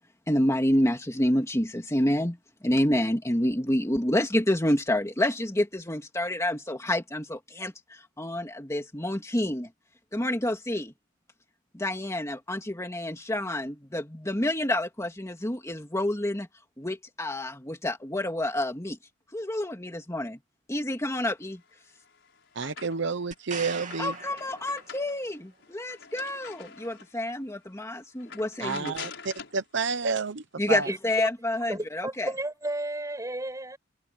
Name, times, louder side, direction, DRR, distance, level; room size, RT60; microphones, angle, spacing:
voice 1, 0.3-9.7 10.1-10.9 11.7-16.5 16.8-19.0 19.3-20.4 20.7-21.6 24.0-28.9 30.6-32.3, left 1 dB, 15° left, 2.1 m, -28 dB
sound 1, 21.7-23.2 23.6-27.2 27.7-27.8 28.2-29.6, left 6 dB, 65° left, 7.0 m, -45 dB
voice 2, 22.5-24.1 28.6-30.9, right 5 dB, 65° right, 0.8 m, -30 dB
sound 2, 23.3-25.3 29.0-29.1, right 6 dB, 40° right, 3.1 m, -41 dB
voice 3, 31.7-33.8, right 1 dB, 15° right, 6.4 m, -33 dB
head